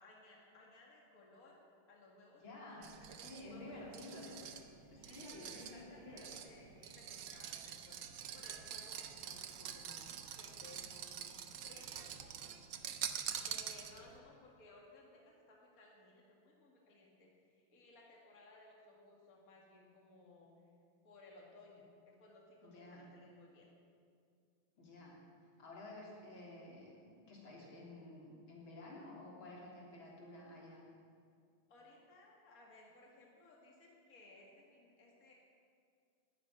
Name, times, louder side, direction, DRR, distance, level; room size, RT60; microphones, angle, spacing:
voice 1, 0.0-1.6 1.9-4.4 5.0-12.6 13.4-20.7 21.0-23.7 31.7-35.3, left 2 dB, 45° left, -2 dB, 2.5 m, -61 dB
voice 2, 2.4-2.9 3.2-4.4 4.9-6.4 22.6-23.0 24.8-25.2 25.6-30.8, left 2 dB, 80° left, -4 dB, 4.1 m, -52 dB
sound 1, 2.8-14.2, right 8 dB, 70° right, 1.5 m, -46 dB
13.0 x 10.0 x 9.7 m, 2.3 s
omnidirectional pair, 2.2 m